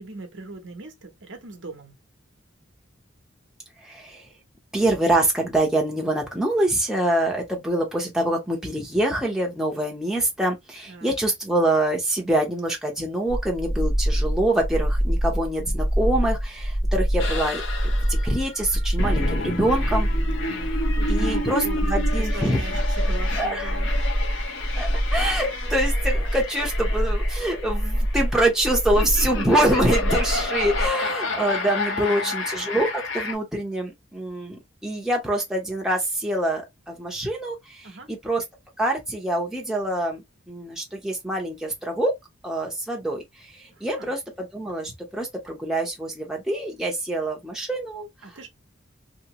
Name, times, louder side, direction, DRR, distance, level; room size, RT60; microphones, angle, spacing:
voice 1, 0.0-1.9 10.9-11.2 20.5-24.1 31.9-32.4 37.8-38.1 43.7-44.1 48.2-48.5, right 3 dB, 65° right, 0.9 m, -40 dB
voice 2, 3.8-4.3 4.7-17.6 18.0-20.1 21.1-22.6 23.3-23.8 24.8-38.4 38.8-42.1 42.4-43.2 43.5-48.1, right 1 dB, ahead, 0.8 m, -25 dB
sound 1, 13.3-30.9, equal, 30° left, 0.9 m, -25 dB
sound 2, 17.2-33.3, left 3 dB, 70° left, 1.0 m, -31 dB
2.9 x 2.8 x 2.9 m
head